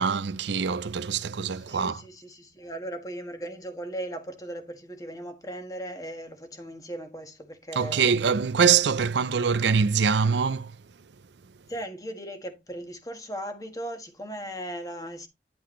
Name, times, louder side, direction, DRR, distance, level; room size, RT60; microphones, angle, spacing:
voice 1, 0.0-2.0 7.8-10.7, right 6 dB, 80° right, 0.5 m, -24 dB
voice 2, 1.5-8.1 11.7-15.3, right 1 dB, 20° left, 1.5 m, -38 dB
10.5 x 5.9 x 3.1 m
head